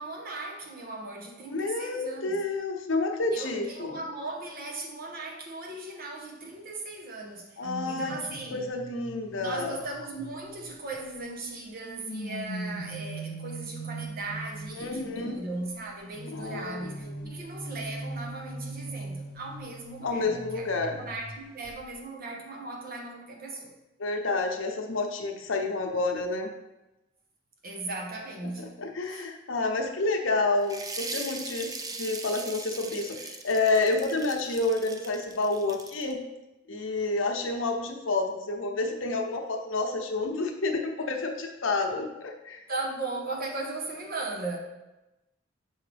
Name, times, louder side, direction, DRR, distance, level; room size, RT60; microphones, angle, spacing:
voice 1, 0.0-2.4 3.3-8.7 9.3-20.7 21.0-23.7 27.6-28.7 29.0-29.3 42.7-44.6, right 2 dB, 50° right, 1 dB, 1.0 m, -37 dB
voice 2, 1.5-4.0 7.6-8.1 8.5-9.8 14.8-15.4 16.3-16.9 17.2-17.3 20.0-21.0 24.0-26.5 28.6-31.7 32.0-36.2 36.7-42.6, left 3 dB, 80° left, 3 dB, 0.8 m, -29 dB
sound 1, 7.6-11.2 11.8-15.1 16.1-21.4 21.6-21.9, right 1 dB, 50° left, 0.6 m, -40 dB
sound 2, 30.6-36.1, right 3 dB, 20° right, 0.4 m, -39 dB
6.3 x 4.6 x 3.4 m, 0.98 s
head